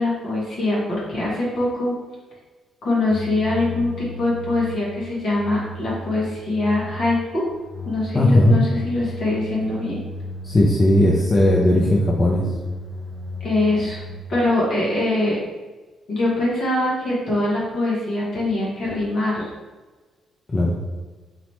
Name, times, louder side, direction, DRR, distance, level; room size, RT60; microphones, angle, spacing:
voice 1, 0.0-1.9 2.8-7.4 7.8-10.0 13.4-14.0 14.3-15.4 16.1-19.5, left 2 dB, 60° left, -6 dB, 1.5 m, -23 dB
sound 1, 3.1-14.2, left 2 dB, 20° right, 1.0 m, -35 dB
voice 2, 8.1-8.6 10.4-12.4 20.5-20.8, left 1 dB, 30° left, -3 dB, 0.7 m, -17 dB
4.0 x 2.8 x 3.2 m, 1.3 s
hypercardioid pair, 40°, 0 cm